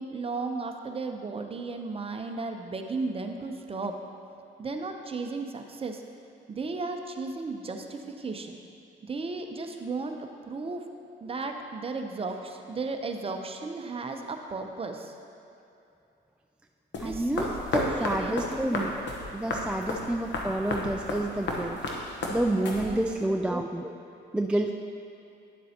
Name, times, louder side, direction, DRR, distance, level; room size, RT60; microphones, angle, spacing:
voice 1, 0.0-4.0 4.6-6.0 6.5-8.6 9.0-10.8 11.2-15.2 17.0-18.3 22.9-23.3, right 3 dB, 30° right, 4 dB, 0.7 m, -35 dB
sound 1, 16.9-23.2, left 2 dB, 65° left, 1.1 m, -33 dB
voice 2, 17.0-18.9 19.3-21.8 22.3-23.9 24.3-24.7, right 1 dB, 5° right, 3 dB, 0.3 m, -29 dB
10.5 x 7.4 x 2.9 m, 2.7 s
cardioid pair, 90°, 20 cm